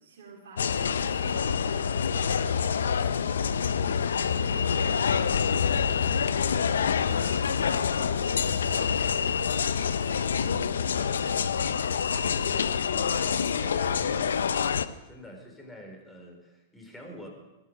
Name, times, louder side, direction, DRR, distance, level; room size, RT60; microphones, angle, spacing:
voice 1, 0.0-1.9 2.4-11.6, right 3 dB, 70° right, -5 dB, 4.3 m, -48 dB
sound 1, 0.6-14.9, left 7 dB, 80° left, 0.6 m, -26 dB
voice 2, 12.9-14.6 15.1-17.3, equal, 10° left, 1 dB, 3.9 m, -46 dB
14.0 x 13.0 x 5.3 m, 1.0 s
hypercardioid pair, 115°, 0 cm